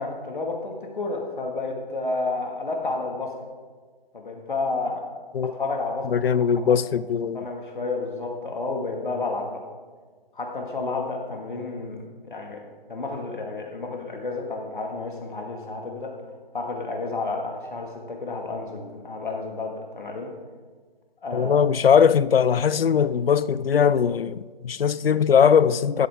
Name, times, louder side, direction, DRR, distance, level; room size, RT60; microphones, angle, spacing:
voice 1, 0.0-3.3 4.1-5.0 5.4-6.0 6.3-6.8 7.3-9.6 10.3-12.0 12.2-12.6 12.9-16.1 16.5-20.3 21.2-21.7, left 3 dB, 60° left, 2.0 m, -31 dB
voice 2, 6.0-7.5 21.3-26.1, left 7 dB, 80° left, 0.5 m, -20 dB
12.5 x 11.5 x 3.6 m
hypercardioid pair, 175°, 29 cm